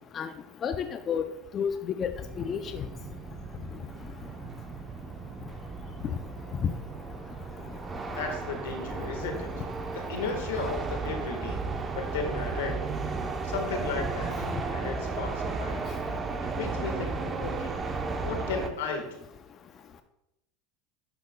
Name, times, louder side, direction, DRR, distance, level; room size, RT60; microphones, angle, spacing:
voice 1, 0.6-1.2 1.5-2.1 2.4-2.8 6.6-6.7, left 7 dB, 35° left, 8 dB, 0.5 m, -30 dB
sound 1, 2.2-18.7, right 4 dB, 25° right, 0.8 m, -34 dB
voice 2, 8.1-9.5 9.9-11.6 11.9-12.8 13.4-14.3 14.7-15.9 16.6-17.1 17.4-17.7 18.2-19.0, left 4 dB, 85° left, 5 dB, 1.5 m, -34 dB
11.5 x 5.7 x 2.3 m, 0.87 s
supercardioid pair, 105°, 0 cm